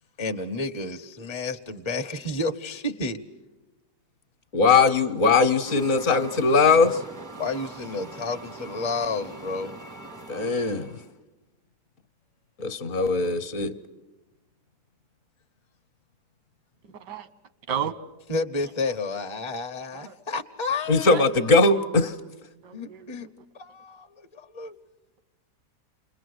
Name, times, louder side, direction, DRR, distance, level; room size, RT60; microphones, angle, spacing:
voice 1, 0.2-3.2 7.4-9.8 18.3-21.1 22.7-23.3 23.5-24.8, left 3 dB, 30° left, 0.6 m, -31 dB
voice 2, 4.5-7.0 10.3-11.0 12.6-13.7 20.9-22.2, left 4 dB, 55° left, 1.3 m, -20 dB
sound 1, 5.6-11.1, right 2 dB, 20° right, 0.4 m, -42 dB
voice 3, 16.8-17.3 17.7-18.0 19.9-20.2 21.1-21.2 22.6-23.3, right 8 dB, 90° right, 1.7 m, -33 dB
29.5 x 22.0 x 7.9 m
omnidirectional pair, 1.8 m